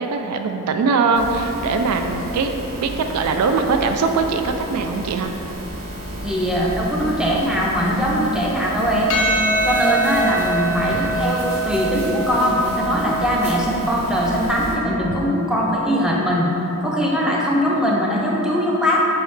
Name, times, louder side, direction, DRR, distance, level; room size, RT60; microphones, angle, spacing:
voice 1, 0.0-5.3, right 4 dB, 90° right, 7 dB, 0.3 m, -21 dB
sound 1, 1.1-14.7, equal, 70° right, 0.8 m, -33 dB
voice 2, 6.2-9.1 9.6-16.5 16.8-19.0, equal, 5° right, -4 dB, 0.4 m, -21 dB
sound 2, 8.8-8.9 9.5-10.5 11.1-12.8 13.4-13.6, equal, 30° right, 1.2 m, -38 dB
Percussion, 9.1-13.7, right 2 dB, 75° left, 0.5 m, -24 dB
4.7 x 3.2 x 3.1 m, 3.0 s
head